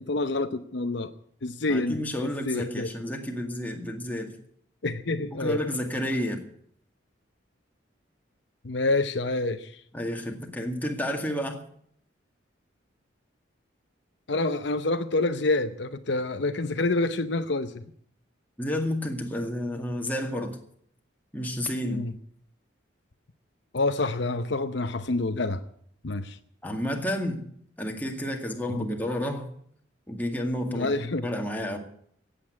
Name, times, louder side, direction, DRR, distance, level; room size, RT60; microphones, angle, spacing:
voice 1, 0.1-1.1 1.4-2.9 4.8-5.6 8.6-9.8 14.3-17.8 21.8-22.1 23.7-25.6 26.0-26.4 28.7-28.9 30.7-31.3, left 2 dB, 65° left, 9 dB, 0.8 m, -27 dB
voice 2, 1.7-4.3 5.3-6.4 9.9-11.6 18.6-20.6 21.3-22.0 26.6-27.4 27.8-29.5 30.1-30.9 31.2-31.8, left 1 dB, 10° left, 2 dB, 2.1 m, -30 dB
16.0 x 8.5 x 9.5 m, 0.65 s
head